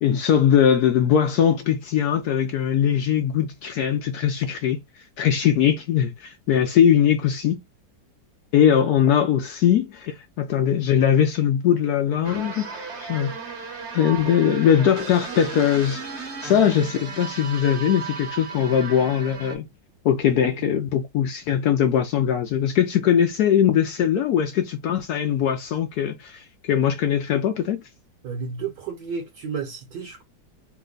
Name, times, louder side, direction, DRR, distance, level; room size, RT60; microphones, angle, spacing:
voice 1, 0.0-4.8 5.2-7.6 8.5-13.3 13.9-19.7 20.0-27.8, left 9 dB, 70° left, 1.0 m, -21 dB
sound 1, 12.2-19.6, right 5 dB, 45° right, 0.9 m, -35 dB
voice 2, 28.2-30.2, right 5 dB, 70° right, 1.3 m, -32 dB
3.3 x 2.1 x 3.7 m
omnidirectional pair, 2.0 m